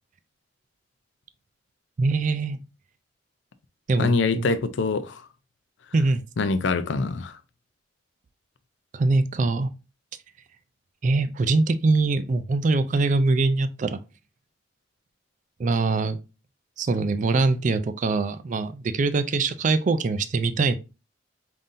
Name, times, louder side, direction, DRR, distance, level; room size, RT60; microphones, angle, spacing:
voice 1, 2.0-2.6 3.9-4.5 5.9-6.2 8.9-9.7 11.0-14.0 15.6-16.2 16.8-20.8, right 3 dB, 40° right, 0.4 m, -23 dB
voice 2, 4.0-5.2 6.4-7.4, left 3 dB, 70° left, 0.5 m, -24 dB
5.4 x 2.7 x 2.5 m
head